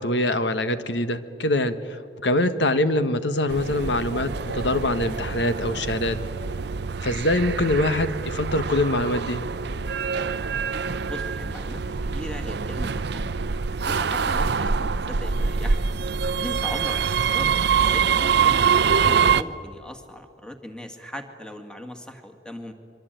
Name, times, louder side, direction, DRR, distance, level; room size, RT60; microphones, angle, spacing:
voice 1, 0.0-6.2 7.0-9.4, left 1 dB, 70° left, 11 dB, 1.5 m, -24 dB
sound 1, 3.5-19.4, right 6 dB, 65° right, 0.7 m, -25 dB
voice 2, 11.1-13.2 13.8-15.8 16.4-17.0 17.3-18.7 19.0-22.7, left 1 dB, 5° left, 6 dB, 2.1 m, -38 dB
25.5 x 23.5 x 9.2 m, 2.4 s
head